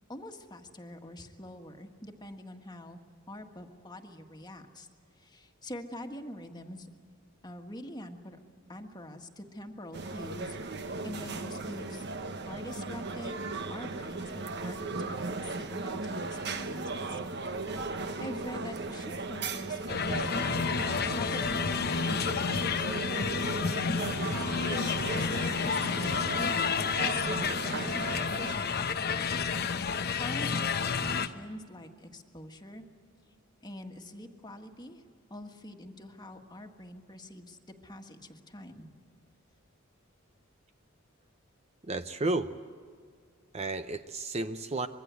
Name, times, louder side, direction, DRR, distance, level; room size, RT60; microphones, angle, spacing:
voice 1, 0.1-3.0 3.3-4.9 5.2-6.9 7.4-8.4 8.7-13.4 13.7-17.2 17.6-20.7 21.1-26.6 27.0-27.2 27.6-29.3 30.2-32.9 33.6-35.0 35.3-37.6 37.8-38.9, left 1 dB, 20° left, 4 dB, 1.6 m, -45 dB
sound 1, 9.9-28.6, right 3 dB, 55° right, 1.2 m, -37 dB
sound 2, 19.9-31.3, left 5 dB, 50° left, 0.9 m, -30 dB
voice 2, 41.9-42.5 43.5-44.9, right 2 dB, 30° right, 9 dB, 0.6 m, -32 dB
25.0 x 22.0 x 8.2 m, 2.1 s
head